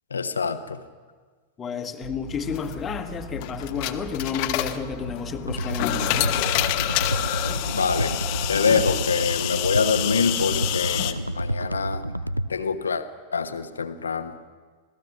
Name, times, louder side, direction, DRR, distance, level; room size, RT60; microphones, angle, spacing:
voice 1, 0.1-0.8 7.7-8.1 8.5-12.0 12.5-13.0 13.3-14.3, left 5 dB, 75° left, 10 dB, 1.2 m, -25 dB
voice 2, 1.6-6.4, left 6 dB, 25° left, 8 dB, 1.6 m, -31 dB
sound 1, 2.0-8.9, left 1 dB, 50° right, 4.1 m, -39 dB
sound 2, 2.4-11.1, left 14 dB, 45° left, 1.1 m, -28 dB
sound 3, 5.5-12.5, right 1 dB, 90° right, 0.5 m, -29 dB
26.0 x 17.5 x 6.1 m, 1.5 s
figure-of-eight pair, 90°, 0 cm